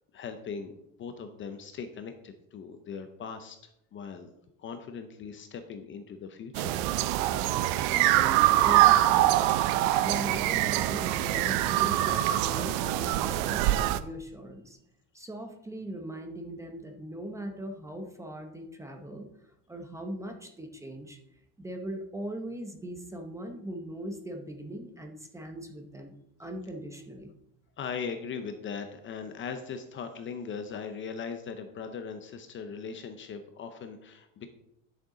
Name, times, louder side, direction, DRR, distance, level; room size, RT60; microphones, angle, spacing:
voice 1, 0.1-0.7 1.0-3.6 3.9-4.3 4.6-6.8 27.8-34.5, left 6 dB, 30° left, 8 dB, 0.6 m, -39 dB
sound 1, 6.6-14.0, right 14 dB, 90° right, 0.7 m, -24 dB
voice 2, 7.9-9.0 10.0-14.8 15.1-19.3 19.7-21.2 21.6-26.1 26.4-27.3, right 1 dB, 10° right, 4 dB, 0.7 m, -40 dB
11.0 x 6.5 x 3.8 m, 0.82 s
cardioid pair, 165°, 40 cm